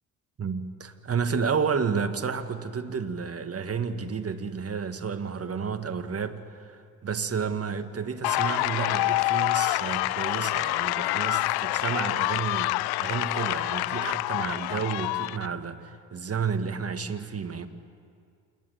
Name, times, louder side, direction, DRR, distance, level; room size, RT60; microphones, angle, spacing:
voice 1, 0.4-17.7, right 6 dB, 35° right, 9 dB, 1.7 m, -31 dB
sound 1, 8.2-15.5, left 18 dB, 65° left, 0.5 m, -27 dB
28.0 x 10.5 x 9.3 m, 2.2 s
hypercardioid pair, 55°, 42 cm